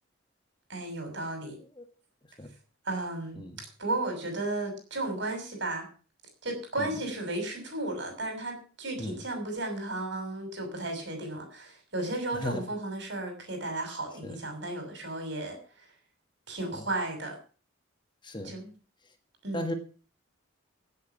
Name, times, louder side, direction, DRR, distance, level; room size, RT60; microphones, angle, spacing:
voice 1, 0.7-1.6 2.8-3.4 3.8-5.9 6.4-15.8 16.5-17.4 18.4-18.7 19.4-19.7, right 2 dB, 55° right, 4 dB, 6.6 m, -34 dB
voice 2, 12.3-12.6 14.2-14.4 16.7-16.8 18.2-18.6 19.5-19.7, left 1 dB, 20° left, 7 dB, 1.5 m, -35 dB
15.5 x 8.3 x 7.1 m, 0.39 s
head